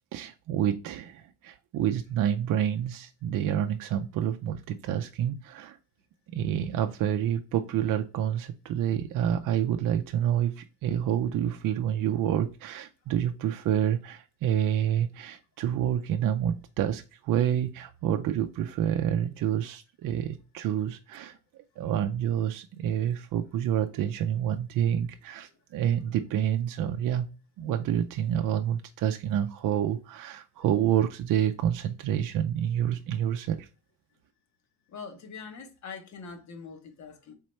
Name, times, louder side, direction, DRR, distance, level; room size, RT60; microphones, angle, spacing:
voice 1, 0.1-5.8 6.3-21.4 21.8-27.3 27.6-33.7, right 10 dB, 70° right, 0.5 m, -28 dB
voice 2, 34.9-37.3, left 5 dB, 55° left, 1.0 m, -43 dB
4.2 x 3.7 x 3.1 m
cardioid pair, 130°, 34 cm